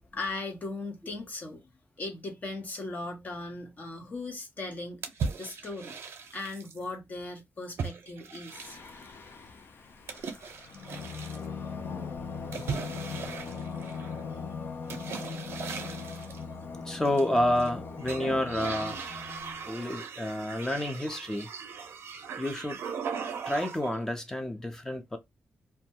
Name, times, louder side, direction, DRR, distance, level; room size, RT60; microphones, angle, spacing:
voice 1, 0.1-1.7 2.0-5.1 5.4-6.0 6.3-8.8, left 2 dB, 40° left, 0.8 m, -38 dB
sound 1, 5.0-6.8 7.8-9.1 10.1-11.5 12.5-14.2 14.9-16.4 17.0-17.7 18.0-24.0, right 6 dB, 80° right, 0.5 m, -38 dB
Singing, 8.5-19.8, left 5 dB, 60° left, 0.5 m, -40 dB
voice 2, 16.9-19.0 19.7-21.5 22.4-22.8 23.5-25.2, left 1 dB, 10° left, 0.5 m, -29 dB
2.2 x 2.2 x 2.7 m
wide cardioid pair, 145°, 4 cm